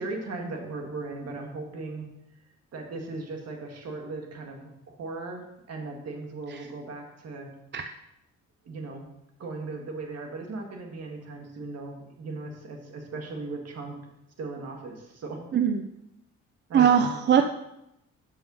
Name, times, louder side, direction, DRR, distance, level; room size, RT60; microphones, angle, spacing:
voice 1, 0.0-2.1 2.7-7.5 8.6-9.1 9.4-14.0 14.4-15.6 16.7-17.1, right 3 dB, 55° right, 2 dB, 1.9 m, -37 dB
voice 2, 15.5-15.9 16.7-17.4, right 8 dB, 35° right, 7 dB, 0.5 m, -21 dB
6.7 x 5.6 x 5.4 m, 0.84 s
cardioid pair, 90°, 30 cm